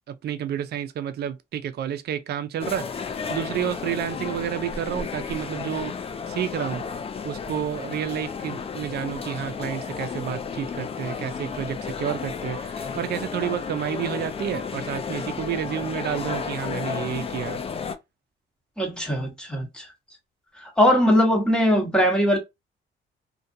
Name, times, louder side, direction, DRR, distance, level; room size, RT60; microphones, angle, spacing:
voice 1, 0.1-5.9 6.3-6.8 7.2-17.6, right 10 dB, 55° right, 0.4 m, -30 dB
sound 1, 2.6-17.9, left 5 dB, 30° left, 0.4 m, -32 dB
voice 2, 18.8-19.9 20.6-22.4, equal, 5° left, 1.1 m, -20 dB
2.4 x 2.2 x 2.6 m
cardioid pair, 90°, 20 cm